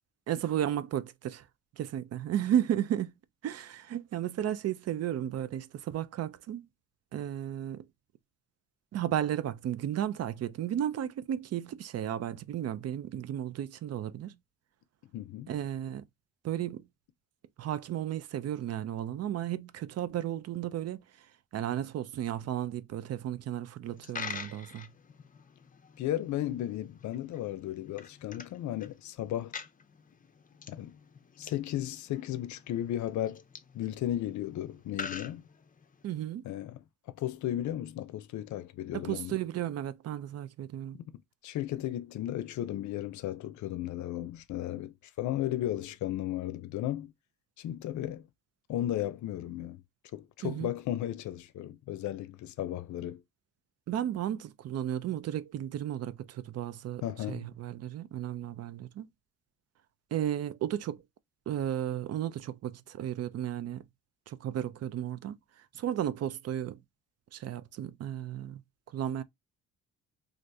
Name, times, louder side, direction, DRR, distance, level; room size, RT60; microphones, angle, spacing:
voice 1, 0.3-1.5 1.8-3.1 3.4-6.7 7.1-7.9 8.9-14.4 15.5-16.0 16.4-16.8 17.6-21.0 21.5-24.9 36.0-36.5 38.9-41.0 50.4-50.7 53.9-59.1 60.1-61.0 61.5-63.8 64.3-65.4 65.7-66.8 67.3-68.6 68.9-69.2, right 11 dB, 55° right, 0.5 m, -34 dB
voice 2, 15.1-15.5 26.0-29.6 30.7-31.0 31.4-33.4 33.7-35.4 36.4-36.8 37.1-39.4 41.4-47.1 47.6-48.2 48.7-49.8 50.1-53.2 57.0-57.5, left 12 dB, 70° left, 0.6 m, -35 dB
Coin (dropping), 23.8-36.1, left 5 dB, 25° left, 0.5 m, -47 dB
3.2 x 2.5 x 2.6 m
cardioid pair, 90°, 30 cm